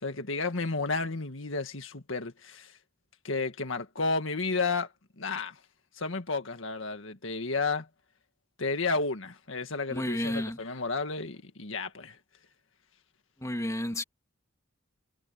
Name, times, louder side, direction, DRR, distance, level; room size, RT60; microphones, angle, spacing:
voice 1, 0.0-2.7 3.2-4.9 5.2-5.6 6.0-7.9 8.6-12.2, left 3 dB, 70° left, 1.8 m, -32 dB
voice 2, 9.9-10.6 13.4-14.0, left 1 dB, 15° left, 2.8 m, -31 dB
head